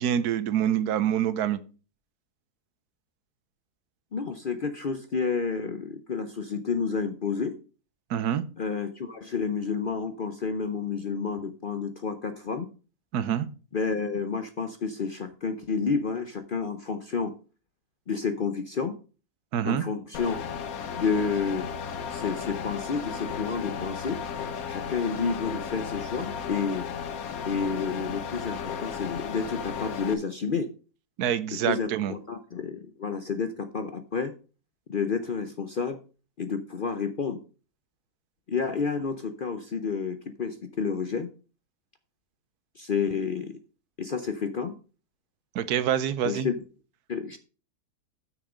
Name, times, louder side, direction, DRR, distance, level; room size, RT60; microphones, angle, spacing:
voice 1, 0.0-1.6 8.1-8.4 13.1-13.5 19.5-19.8 31.2-32.1 45.5-46.5, right 9 dB, 80° right, 15 dB, 1.2 m, -26 dB
voice 2, 4.1-7.6 8.6-12.7 13.7-17.3 18.1-18.9 19.6-20.4 21.0-21.7 22.1-24.2 24.7-26.9 27.4-30.7 31.7-34.3 34.9-36.0 36.4-37.4 38.5-41.3 42.7-43.6 44.0-44.7 46.2-46.5 47.1-47.4, left 5 dB, 50° left, 9 dB, 0.6 m, -30 dB
sound 1, 20.1-30.1, left 7 dB, 65° left, 1.3 m, -35 dB
8.9 x 6.4 x 4.9 m, 0.36 s
omnidirectional pair, 1.7 m